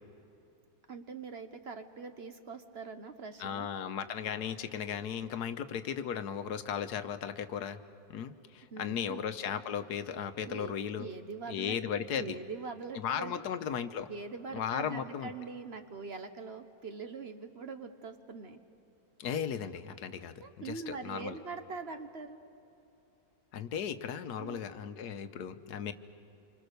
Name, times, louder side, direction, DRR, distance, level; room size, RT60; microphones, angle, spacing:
voice 1, 0.9-3.7 8.7-9.2 10.4-10.7 11.0-11.8 12.2-13.4 14.1-18.6 19.4-19.5 20.4-22.4 24.4-24.6, right 4 dB, 45° right, 8 dB, 1.2 m, -43 dB
voice 2, 3.4-7.8 8.1-11.1 11.5-12.3 12.9-14.1 14.5-15.3 19.2-21.4 23.5-25.9, left 8 dB, 85° left, 11 dB, 1.4 m, -36 dB
27.5 x 24.5 x 6.7 m, 2.8 s
omnidirectional pair, 1.7 m